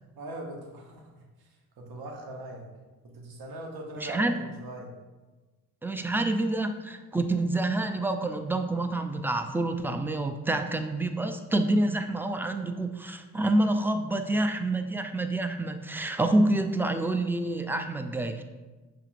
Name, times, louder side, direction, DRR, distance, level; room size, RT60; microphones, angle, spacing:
voice 1, 0.1-1.1 1.4-2.7 3.0-4.9, right 1 dB, 70° right, 0 dB, 1.1 m, -41 dB
voice 2, 4.0-4.4 5.8-18.4, right 2 dB, 5° right, 7 dB, 0.4 m, -27 dB
5.6 x 3.4 x 2.5 m, 1.2 s
supercardioid pair, 50°, 39 cm